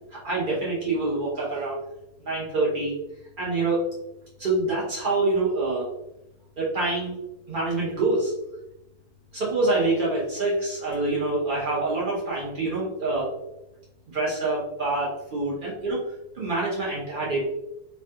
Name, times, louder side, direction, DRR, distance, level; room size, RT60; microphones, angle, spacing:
voice 1, 0.1-1.8 2.2-2.9 3.4-3.8 4.4-5.9 6.6-7.2 7.5-8.3 9.3-13.3 14.1-16.0 16.3-17.5, right 2 dB, 85° right, -6 dB, 0.4 m, -26 dB
3.2 x 2.2 x 2.7 m, 0.89 s
omnidirectional pair, 2.0 m